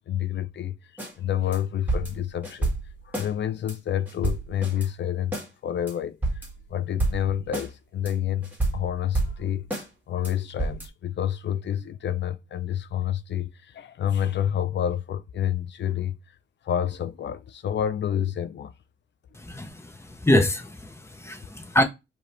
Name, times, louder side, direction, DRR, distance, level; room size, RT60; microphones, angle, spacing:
voice 1, 0.1-2.7 3.0-16.4 16.6-18.7, left 10 dB, 70° left, 0.4 m, -29 dB
sound 1, 1.0-1.1 1.5-1.6 1.9-3.3 3.7-3.8 4.1-4.9 5.3-5.5 5.9-6.0 6.2-6.7 7.0-7.7 8.1-8.2 8.4-9.9 10.2-10.3 10.6-10.9, right 2 dB, 10° right, 1.8 m, -29 dB
voice 2, 19.3-21.8, left 1 dB, 15° left, 0.9 m, -25 dB
4.9 x 2.8 x 3.2 m
cardioid pair, 95°, 19 cm